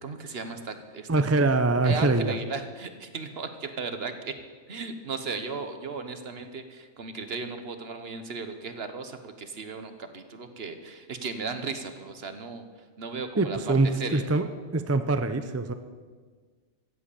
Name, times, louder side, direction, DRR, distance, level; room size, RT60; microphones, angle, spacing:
voice 1, 0.0-1.1 1.4-1.5 1.8-4.3 4.7-12.6 13.0-13.6 13.9-14.3, right 4 dB, 55° right, 8 dB, 1.3 m, -36 dB
voice 2, 1.1-2.4 13.4-14.5 14.7-15.7, right 3 dB, 20° right, 9 dB, 0.4 m, -24 dB
14.5 x 7.9 x 8.5 m, 1.5 s
omnidirectional pair, 1.3 m